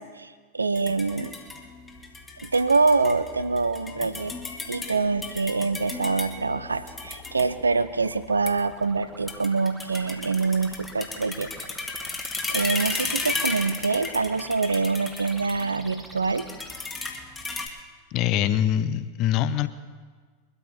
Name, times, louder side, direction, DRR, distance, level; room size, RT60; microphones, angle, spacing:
voice 1, 0.0-1.3 2.4-4.4 4.7-11.5 12.0-16.5, right 4 dB, 80° right, 14 dB, 0.7 m, -25 dB
sound 1, 0.7-17.7, left 3 dB, 15° left, 1.8 m, -35 dB
sound 2, 2.7-16.9, right 1 dB, 5° right, 1.5 m, -48 dB
voice 2, 18.1-19.7, left 10 dB, 40° left, 13 dB, 0.8 m, -23 dB
22.0 x 13.0 x 4.3 m, 1.5 s
figure-of-eight pair, 90°, 0 cm